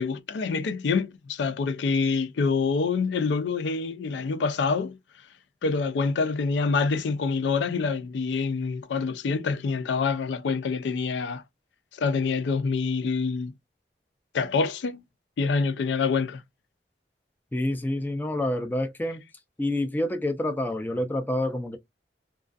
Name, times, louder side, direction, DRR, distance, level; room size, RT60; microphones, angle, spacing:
voice 1, 0.0-5.0 5.6-11.4 12.0-13.5 14.3-15.0 15.4-16.4, left 4 dB, 80° left, 0.4 m, -26 dB
voice 2, 17.5-19.2 19.6-21.8, left 1 dB, 10° left, 0.4 m, -28 dB
2.3 x 2.3 x 2.4 m
head